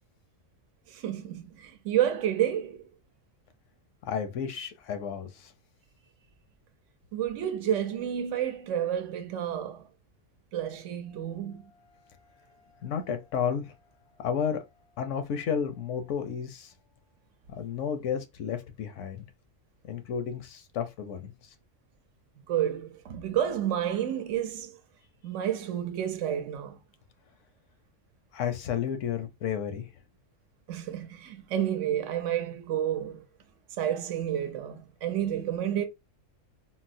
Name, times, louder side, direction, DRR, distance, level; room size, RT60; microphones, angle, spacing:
voice 1, 0.9-2.9 7.1-9.9 10.5-11.6 22.5-24.8 25.2-26.8 30.7-33.2 33.8-35.9, right 10 dB, 75° right, 0.9 m, -30 dB
voice 2, 4.1-5.5 12.8-13.7 14.2-14.6 15.0-16.7 17.5-19.3 19.9-21.3 28.3-29.9, left 7 dB, 75° left, 0.9 m, -32 dB
4.0 x 2.0 x 2.5 m
omnidirectional pair, 1.3 m